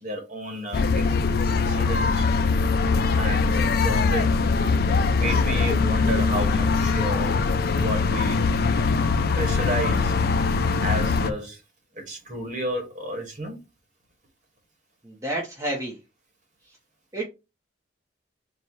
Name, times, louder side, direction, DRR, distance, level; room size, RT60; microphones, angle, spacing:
voice 1, 0.0-1.1 1.6-2.3 3.1-4.3 5.2-7.3 7.7-8.4 8.7-8.8 9.3-10.2 10.8-11.6 11.9-13.6, right 1 dB, 40° right, 1.3 m, -31 dB
sound 1, 0.7-11.3, left 4 dB, 50° left, 0.4 m, -22 dB
voice 2, 15.0-16.0 17.1-17.2, right 1 dB, 15° right, 0.8 m, -29 dB
4.1 x 2.3 x 4.5 m
head